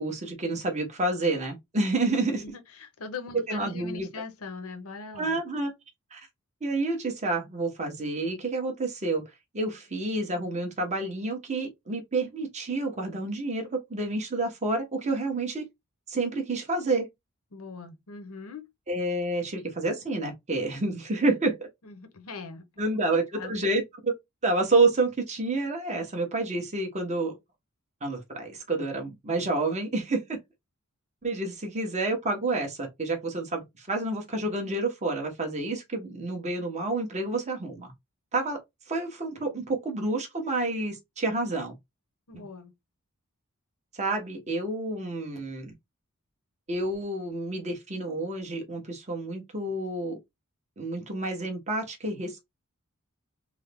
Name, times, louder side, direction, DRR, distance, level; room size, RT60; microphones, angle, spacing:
voice 1, 0.0-2.4 3.5-4.1 5.2-5.7 6.1-6.2 6.6-9.2 9.5-15.6 16.1-17.1 18.9-21.7 22.8-24.1 24.4-27.4 28.0-30.4 31.2-37.9 38.3-38.6 38.9-41.8 42.3-42.4 43.9-45.7 46.7-50.2 50.8-52.5, right 2 dB, 30° right, 1.1 m, -29 dB
voice 2, 2.3-5.4 17.5-18.6 21.8-22.6 23.3-23.6 42.3-42.7, left 4 dB, 70° left, 0.8 m, -41 dB
3.6 x 2.0 x 3.4 m
head